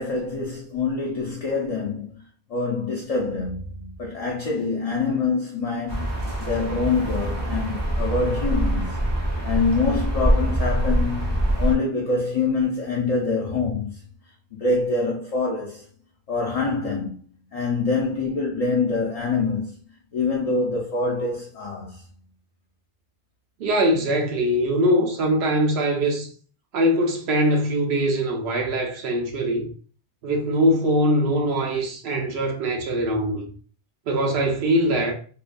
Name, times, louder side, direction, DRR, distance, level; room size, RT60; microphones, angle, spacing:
voice 1, 0.0-2.2 2.5-9.0 9.4-14.0 14.5-15.8 16.3-17.2 17.5-19.7 20.1-22.0, left 4 dB, 50° left, 0.5 m, -25 dB
sound 1, 5.9-11.7, right 1 dB, 30° right, 0.5 m, -24 dB
voice 2, 23.6-26.3 26.7-29.7 30.2-33.5 34.1-35.1, equal, 75° right, 0.9 m, -22 dB
2.7 x 2.1 x 2.4 m
omnidirectional pair, 1.1 m